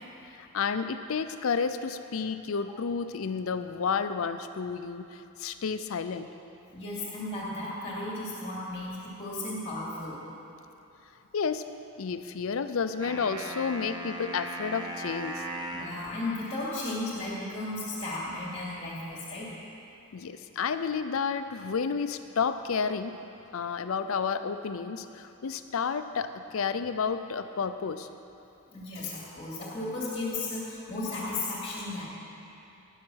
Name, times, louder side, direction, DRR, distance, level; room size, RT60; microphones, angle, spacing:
voice 1, 0.3-6.3 11.3-11.6 12.0-15.5 20.1-23.2 23.5-28.1, left 5 dB, 65° left, 10 dB, 0.5 m, -31 dB
voice 2, 6.7-10.2 15.7-19.5 28.7-32.1, left 2 dB, 25° left, -5 dB, 2.5 m, -35 dB
sound 1, 13.0-16.0, right 1 dB, 20° right, 0.7 m, -37 dB
10.5 x 7.5 x 6.3 m, 2.9 s
head